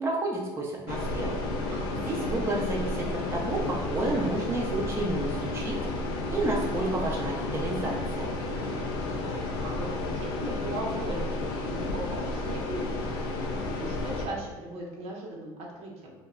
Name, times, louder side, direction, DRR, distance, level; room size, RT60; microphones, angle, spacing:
voice 1, 0.0-1.4 1.9-5.8 6.3-8.3, right 2 dB, 20° right, -3 dB, 0.5 m, -30 dB
sound 1, 0.9-14.3, left 2 dB, 90° left, 0.4 m, -32 dB
voice 2, 1.7-2.3 8.6-13.1 13.6-16.1, right 1 dB, 60° right, -2 dB, 0.7 m, -39 dB
2.2 x 2.0 x 3.5 m, 1.2 s
supercardioid pair, 85°, 13 cm